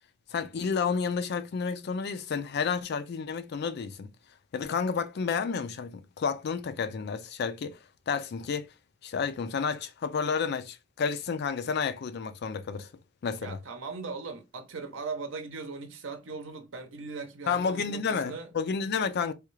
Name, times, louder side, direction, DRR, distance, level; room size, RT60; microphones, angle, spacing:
voice 1, 0.3-4.1 4.5-7.8 8.1-8.7 9.0-12.9 13.2-13.6 17.5-19.3, left 5 dB, 60° left, 0.4 m, -31 dB
voice 2, 13.4-18.5, right 4 dB, 85° right, 0.7 m, -39 dB
3.4 x 2.3 x 3.1 m
head